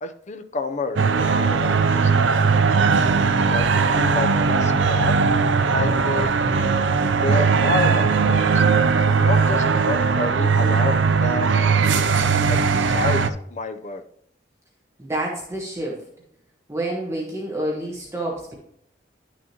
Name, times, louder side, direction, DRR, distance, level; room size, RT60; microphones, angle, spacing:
voice 1, 0.0-2.4 3.5-5.2 5.7-6.3 7.0-8.6 9.2-11.5 11.8-12.1 12.5-14.0, left 3 dB, 40° left, 8 dB, 0.6 m, -30 dB
sound 1, 1.0-13.3, right 5 dB, 85° right, 0.5 m, -19 dB
voice 2, 15.0-16.0 16.7-18.5, right 1 dB, 15° right, -3 dB, 1.3 m, -28 dB
10.5 x 6.2 x 2.9 m, 0.70 s
head